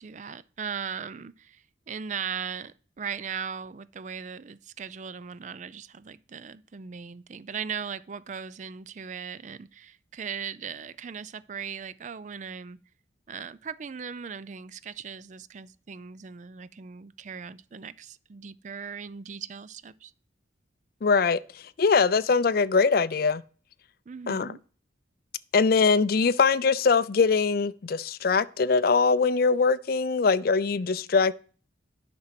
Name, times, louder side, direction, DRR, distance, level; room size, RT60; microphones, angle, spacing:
voice 1, 0.0-12.8 13.3-20.1 24.1-24.6, right 6 dB, 40° right, 0.4 m, -38 dB
voice 2, 21.0-23.4 24.3-24.5 25.5-31.3, left 4 dB, 50° left, 0.4 m, -22 dB
10.5 x 6.0 x 5.8 m
head